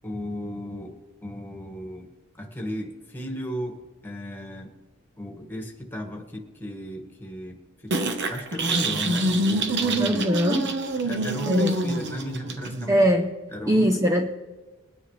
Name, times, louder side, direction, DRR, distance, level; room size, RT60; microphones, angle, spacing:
voice 1, 0.0-2.1 2.4-4.7 5.2-7.6 7.8-7.9 8.2-10.2 11.0-13.1 13.5-13.9, equal, 10° left, 2 dB, 1.7 m, -35 dB
sound 1, 7.9-12.9, right 2 dB, 50° right, 1.1 m, -26 dB
voice 2, 10.0-10.8 11.5-11.7 12.9-13.3 13.7-14.3, equal, 15° right, 3 dB, 0.6 m, -21 dB
21.5 x 9.7 x 3.3 m, 1.2 s
head